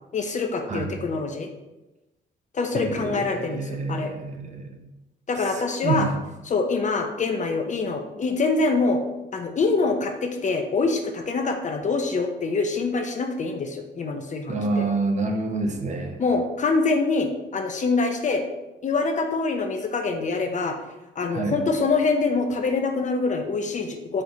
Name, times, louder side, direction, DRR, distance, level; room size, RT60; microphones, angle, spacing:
voice 1, 0.1-1.5 2.5-4.1 5.3-6.1 6.5-9.0 9.3-14.9 16.2-18.4 18.8-20.8 21.2-24.2, left 3 dB, 40° left, 5 dB, 0.5 m, -25 dB
voice 2, 2.7-4.8 5.5-6.1 14.5-16.2 21.3-21.6, right 3 dB, 35° right, 4 dB, 0.6 m, -28 dB
4.3 x 3.7 x 2.7 m, 1.0 s
cardioid pair, 90°, 20 cm